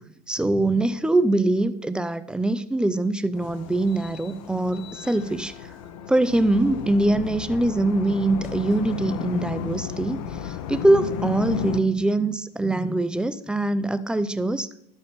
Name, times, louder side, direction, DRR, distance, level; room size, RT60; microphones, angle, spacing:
voice 1, 0.0-5.7 6.1-14.7, right 2 dB, 5° right, 14 dB, 0.4 m, -23 dB
sound 1, 3.3-11.8, left 8 dB, 50° left, 0.8 m, -33 dB
12.5 x 7.0 x 3.6 m, 0.76 s
figure-of-eight pair, 80°, 21 cm